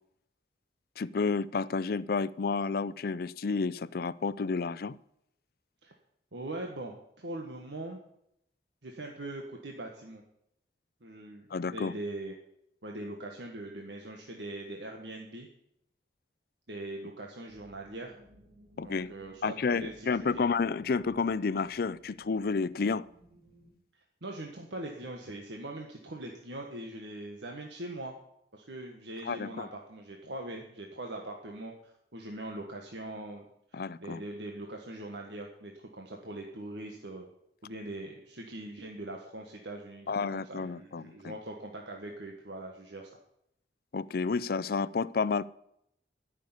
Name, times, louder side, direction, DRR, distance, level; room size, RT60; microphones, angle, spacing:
voice 1, 1.0-5.0 11.5-11.9 18.8-19.1 19.4-23.1 29.3-29.7 33.7-34.2 40.1-41.3 43.9-45.4, left 4 dB, 55° left, 0.5 m, -30 dB
voice 2, 6.3-8.0 8.8-10.2 11.0-12.3 12.8-15.5 16.7-18.1 18.8-20.4 24.2-28.1 28.5-33.5 33.7-37.3 37.6-43.1, right 1 dB, 85° right, 1.6 m, -41 dB
sound 1, 17.5-23.7, equal, 45° right, 3.6 m, -58 dB
13.5 x 6.6 x 9.7 m
head